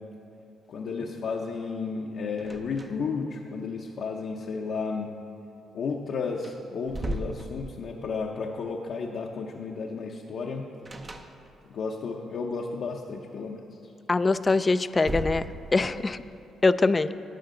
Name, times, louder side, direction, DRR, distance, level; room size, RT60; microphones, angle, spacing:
voice 1, 0.7-5.1 5.7-10.7 11.7-13.6, left 4 dB, 65° left, 0 dB, 0.7 m, -33 dB
sound 1, 2.4-3.2 3.5-3.6 5.8-5.9 6.3-8.1 10.8-11.8 14.3-16.0, right 1 dB, 25° right, 0.6 m, -37 dB
voice 2, 14.1-15.4 15.7-16.2 16.6-17.1, left 3 dB, 25° left, 14 dB, 0.3 m, -23 dB
12.5 x 8.6 x 3.8 m, 2.8 s
cardioid pair, 90°, 0 cm